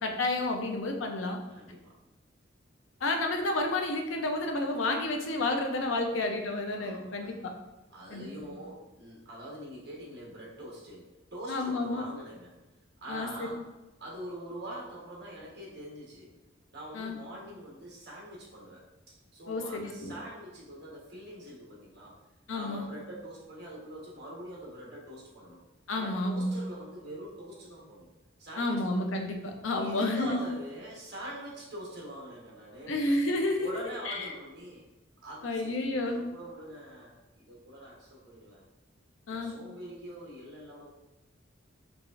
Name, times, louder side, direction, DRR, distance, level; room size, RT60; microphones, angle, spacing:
voice 1, 0.0-1.4 3.0-7.5 8.1-8.3 11.5-12.0 13.1-13.5 16.9-17.2 19.5-20.1 22.5-22.8 25.9-26.6 28.6-30.4 32.9-33.7 34.1-34.3 35.4-36.2 39.3-39.5, left 2 dB, 85° left, 4 dB, 0.6 m, -30 dB
voice 2, 1.5-1.9 6.8-7.4 7.9-12.6 13.0-13.6 14.0-16.3 16.7-22.2 22.5-25.6 25.9-28.1 28.4-29.1 29.8-33.1 33.6-34.8 35.2-38.6 39.3-40.9, right 1 dB, 55° right, -5 dB, 1.2 m, -44 dB
4.7 x 2.4 x 2.5 m, 1.0 s
head